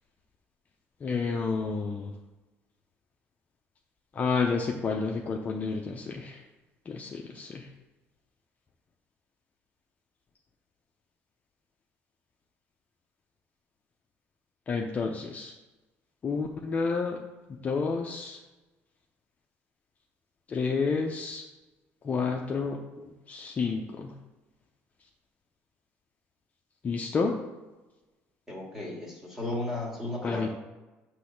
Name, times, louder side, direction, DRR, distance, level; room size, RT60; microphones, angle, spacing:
voice 1, 1.0-2.1 4.2-6.4 6.9-7.6 14.7-15.5 16.2-17.2 17.6-18.4 20.5-21.4 22.0-24.1 26.8-27.4 30.2-30.5, left 4 dB, 30° left, 1 dB, 0.5 m, -30 dB
voice 2, 28.5-30.5, left 1 dB, 5° right, -3 dB, 1.8 m, -34 dB
6.2 x 3.1 x 5.8 m, 1.1 s
cardioid pair, 130°, 5 cm